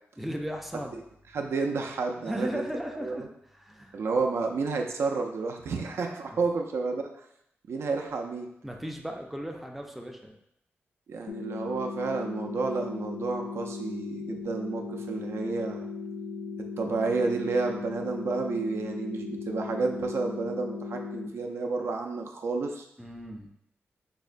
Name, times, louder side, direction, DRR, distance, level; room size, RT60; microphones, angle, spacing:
voice 1, 0.2-0.9 2.3-4.3 8.6-10.4 23.0-23.5, equal, ahead, 2 dB, 0.4 m, -36 dB
voice 2, 1.3-2.6 3.0-3.3 3.9-7.0 7.7-8.5 11.1-15.9 16.8-22.9, right 4 dB, 70° right, 3 dB, 0.4 m, -30 dB
sound 1, 11.3-21.3, left 4 dB, 75° left, 0.4 m, -37 dB
5.3 x 2.1 x 2.4 m, 0.76 s
wide cardioid pair, 130°, 5 cm